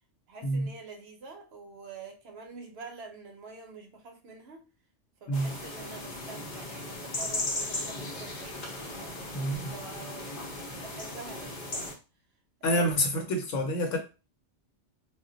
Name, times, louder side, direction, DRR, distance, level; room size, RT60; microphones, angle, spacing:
voice 1, 0.3-4.7 5.2-8.6 9.7-10.4 10.8-12.0 12.6-13.0, right 4 dB, 60° right, 0.8 m, -46 dB
sound 1, 5.3-11.9, left 2 dB, 45° left, 0.7 m, -37 dB
voice 2, 9.3-9.8 12.6-14.0, equal, 85° left, 1.1 m, -28 dB
2.4 x 2.2 x 3.8 m
omnidirectional pair, 1.3 m